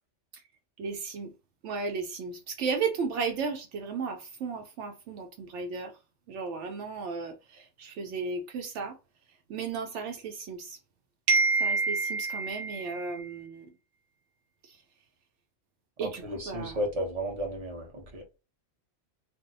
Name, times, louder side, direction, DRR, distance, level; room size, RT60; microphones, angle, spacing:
voice 1, 0.8-1.3 1.6-5.9 6.3-9.0 9.5-10.8 11.3-13.7 14.6-14.8 16.0-16.9, right 4 dB, 75° right, 0.8 m, -32 dB
voice 2, 16.0-18.2, equal, 35° right, 0.7 m, -33 dB
2.6 x 2.0 x 3.9 m
omnidirectional pair, 1.3 m